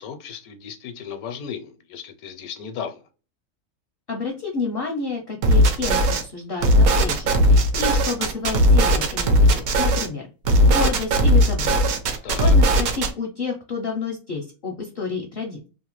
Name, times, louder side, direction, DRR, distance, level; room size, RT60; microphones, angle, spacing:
voice 1, 0.0-3.0 12.2-12.6, left 7 dB, 75° left, 1.0 m, -35 dB
voice 2, 4.1-10.3 10.6-12.0 12.4-15.7, left 4 dB, 60° left, 0.6 m, -30 dB
sound 1, 5.4-6.2 6.6-10.1 10.5-13.1, equal, 70° right, 1.0 m, -17 dB
2.7 x 2.1 x 2.9 m
omnidirectional pair, 1.6 m